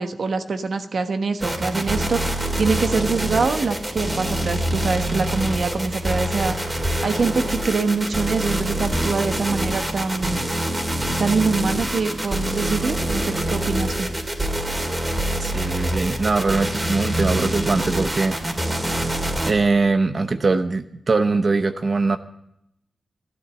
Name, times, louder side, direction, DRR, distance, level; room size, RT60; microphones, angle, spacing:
voice 1, 0.0-6.6 7.0-10.4 11.2-14.1, right 4 dB, 75° right, 7 dB, 1.3 m, -24 dB
sound 1, 1.4-19.5, right 1 dB, 25° right, 2.7 m, -25 dB
voice 2, 15.4-18.4 19.4-22.2, right 3 dB, 55° right, 8 dB, 0.8 m, -21 dB
14.0 x 11.5 x 7.4 m, 0.78 s
wide cardioid pair, 80°, 0 cm